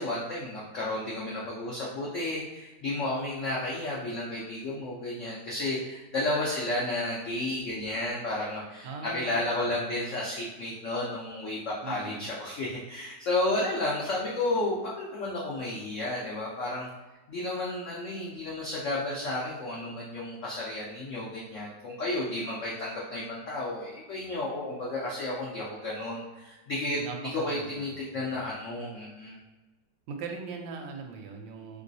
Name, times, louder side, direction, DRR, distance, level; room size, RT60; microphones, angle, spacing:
voice 1, 0.0-16.9 17.3-27.0 27.3-29.4, left 2 dB, 90° left, -5 dB, 0.6 m, -32 dB
voice 2, 8.8-9.9 11.8-12.3 27.0-28.5 30.1-31.8, right 5 dB, 80° right, 3 dB, 1.3 m, -41 dB
3.1 x 2.9 x 2.7 m, 1.1 s
omnidirectional pair, 2.0 m